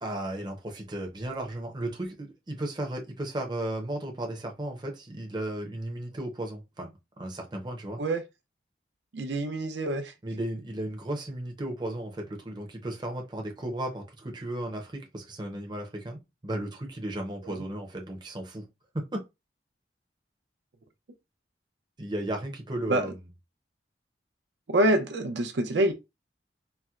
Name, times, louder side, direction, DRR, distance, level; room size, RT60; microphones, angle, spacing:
voice 1, 0.0-8.0 10.2-18.6 18.9-19.2 22.0-23.2, right 1 dB, 25° right, 0.6 m, -35 dB
voice 2, 9.1-10.1 17.4-17.6 22.9-23.1 24.7-25.9, right 1 dB, 75° right, 0.6 m, -26 dB
4.2 x 2.1 x 2.4 m
head